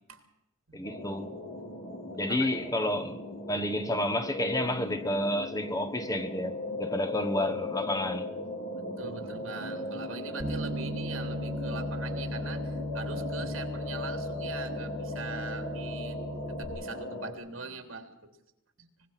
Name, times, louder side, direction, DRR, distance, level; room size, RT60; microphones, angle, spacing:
voice 1, 0.7-1.3 2.2-3.2 3.5-8.3, left 1 dB, 15° left, 1.3 m, -30 dB
sound 1, 0.8-17.3, left 1 dB, 50° left, 3.8 m, -38 dB
voice 2, 9.0-16.2 16.5-18.3, right 4 dB, 75° right, 3.3 m, -42 dB
Bass guitar, 10.4-16.6, left 1 dB, 20° right, 3.2 m, -37 dB
25.0 x 20.5 x 5.9 m
head